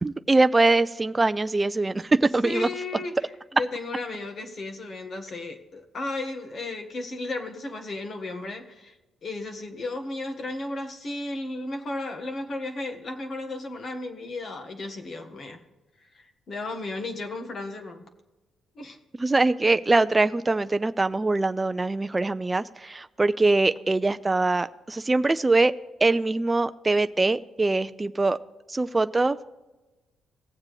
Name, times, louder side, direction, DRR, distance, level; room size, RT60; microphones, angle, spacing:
voice 1, 0.0-2.7 19.1-25.7 26.0-28.4 28.7-29.4, right 2 dB, 20° right, 11 dB, 0.4 m, -23 dB
voice 2, 2.4-3.3 3.5-9.0 9.2-15.6 16.1-18.0 18.7-19.0, left 2 dB, 50° left, 5 dB, 1.5 m, -34 dB
18.5 x 7.3 x 3.2 m, 1.1 s
cardioid pair, 90°, 0 cm